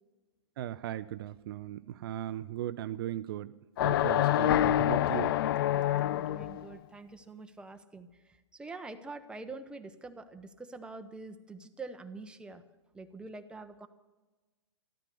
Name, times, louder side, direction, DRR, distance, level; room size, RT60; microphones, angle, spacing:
voice 1, 0.6-3.5 3.8-5.4, right 12 dB, 50° right, 13 dB, 0.5 m, -37 dB
sound 1, 3.8-6.6, left 13 dB, 50° left, 0.4 m, -27 dB
voice 2, 5.7-12.6 12.9-13.9, right 3 dB, 5° right, 7 dB, 0.9 m, -45 dB
13.0 x 13.0 x 6.8 m, 1.2 s
hypercardioid pair, 115°, 15 cm